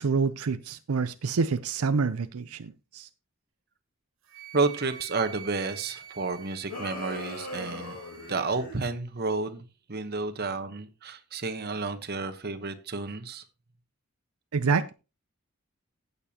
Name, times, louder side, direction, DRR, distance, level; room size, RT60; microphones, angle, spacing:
voice 1, 0.0-3.1 14.5-14.9, right 5 dB, 85° right, 0.5 m, -27 dB
Wind instrument woodwind instrument, 4.3-8.5, right 9 dB, 65° right, 1.3 m, -47 dB
voice 2, 4.5-8.0 8.3-13.4, right 3 dB, 45° right, 1.1 m, -31 dB
sound 1, 6.7-8.8, left 1 dB, 45° left, 4.3 m, -39 dB
15.5 x 6.9 x 2.9 m
head